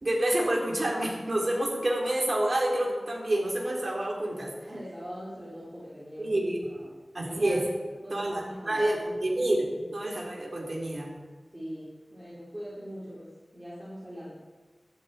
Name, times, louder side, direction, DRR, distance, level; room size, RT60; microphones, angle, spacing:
voice 1, 0.0-4.5 6.2-6.6 7.1-7.6 8.1-11.1, right 1 dB, 55° right, -1 dB, 3.8 m, -28 dB
voice 2, 4.6-6.3 6.8-6.9 7.2-7.7 8.0-8.8 11.5-14.4, equal, 20° right, -8 dB, 4.0 m, -41 dB
14.5 x 12.0 x 4.4 m, 1.4 s
wide cardioid pair, 50°, 0 cm